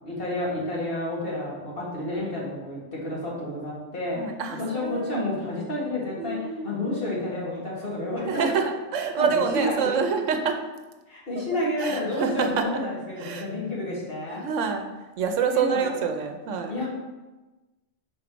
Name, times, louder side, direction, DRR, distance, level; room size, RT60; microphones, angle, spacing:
voice 1, 0.0-4.2 4.6-6.4 6.6-8.5 9.2-10.0 11.1-14.5 15.5-15.9 16.7-16.9, left 1 dB, 50° left, -6 dB, 2.1 m, -30 dB
voice 2, 4.1-5.2 6.2-6.9 8.2-10.6 11.8-12.6 13.2-13.4 14.4-14.8 15.2-16.7, right 6 dB, 90° right, 5 dB, 1.0 m, -27 dB
5.0 x 4.4 x 5.9 m, 1.1 s
omnidirectional pair, 1.3 m